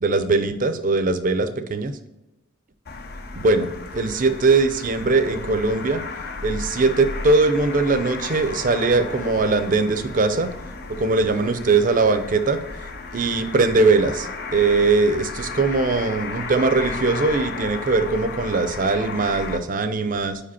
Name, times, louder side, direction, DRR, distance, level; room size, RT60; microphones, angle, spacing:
voice 1, 0.0-1.9 3.4-6.0 6.4-10.5 11.0-12.6 13.1-20.4, right 3 dB, 40° right, 10 dB, 0.5 m, -20 dB
sound 1, 2.8-19.6, left 3 dB, 50° left, 0.6 m, -34 dB
5.0 x 5.0 x 4.2 m, 0.97 s
head